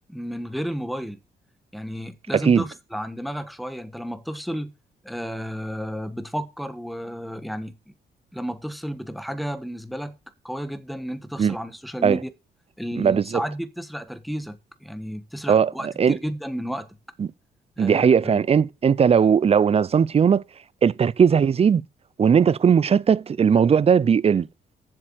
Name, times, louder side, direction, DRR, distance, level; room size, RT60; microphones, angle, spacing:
voice 1, 0.1-1.2 1.7-4.7 5.0-7.8 8.3-10.1 10.4-12.3 12.8-16.9 17.8-18.4, equal, ahead, 1.3 m, -32 dB
voice 2, 2.3-2.6 11.4-11.6 12.0-12.2 13.0-13.4 15.5-16.2 17.2-17.3 17.8-20.4 20.8-21.8 22.2-24.5, right 7 dB, 35° right, 0.5 m, -18 dB
7.6 x 6.6 x 6.3 m
cardioid pair, 70°, 18 cm